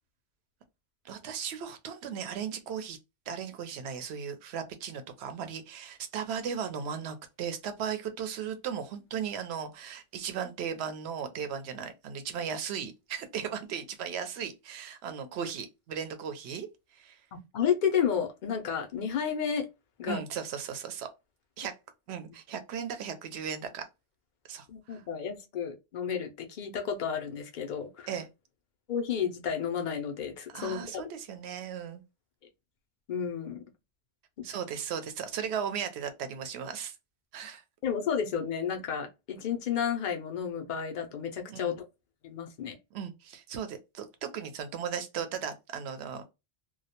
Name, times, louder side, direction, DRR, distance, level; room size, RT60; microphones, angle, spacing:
voice 1, 1.0-3.0 3.3-16.7 16.9-17.2 20.1-21.1 21.6-21.7 22.1-23.8 24.5-25.0 28.1-28.3 30.5-32.0 34.4-36.9 37.3-37.6 41.5-41.8 42.9-46.3, right 7 dB, 70° right, 0.8 m, -36 dB
voice 2, 17.5-19.7 20.0-20.2 24.7-28.1 28.9-31.1 33.1-33.6 34.4-34.5 37.8-41.8 42.2-42.8, left 7 dB, 60° left, 0.5 m, -31 dB
2.2 x 2.0 x 2.7 m
omnidirectional pair, 1.2 m